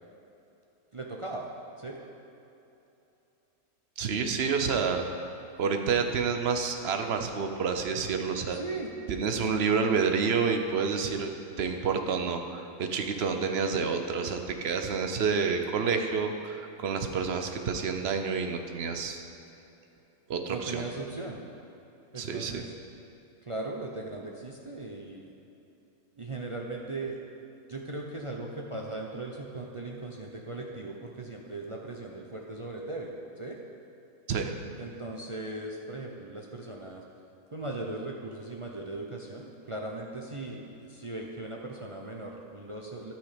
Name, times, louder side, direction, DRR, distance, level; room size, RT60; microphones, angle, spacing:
voice 1, 0.9-1.5 1.8-2.0 8.5-8.9 20.5-21.4 22.1-22.7 23.4-25.3 26.2-27.2 27.7-33.1 33.4-33.6 34.8-37.0 37.5-43.1, right 2 dB, 35° right, -1 dB, 0.5 m, -38 dB
voice 2, 4.0-5.0 5.6-8.6 9.1-11.3 11.6-19.2 20.3-20.9 22.2-22.6 34.3-34.5, right 5 dB, 55° right, 5 dB, 0.8 m, -29 dB
13.0 x 6.2 x 5.0 m, 2.9 s
omnidirectional pair, 1.5 m